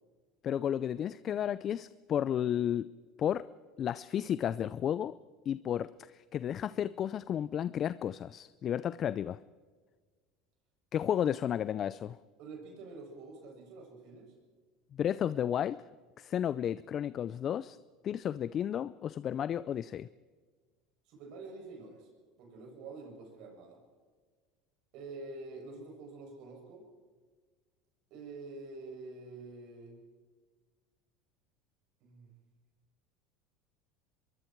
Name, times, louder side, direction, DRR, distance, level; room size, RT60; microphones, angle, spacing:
voice 1, 0.4-2.9 3.2-3.4 3.8-5.2 5.5-9.4 10.9-12.2 14.9-15.8 16.2-17.8 18.0-20.1, left 9 dB, 40° left, 16 dB, 0.5 m, -32 dB
voice 2, 12.4-14.3 21.1-22.1 22.4-23.8 24.9-26.9 28.1-30.0 32.0-32.3, right 3 dB, 65° right, 2 dB, 7.5 m, -47 dB
24.5 x 22.5 x 4.7 m, 1.5 s
supercardioid pair, 105°, 0 cm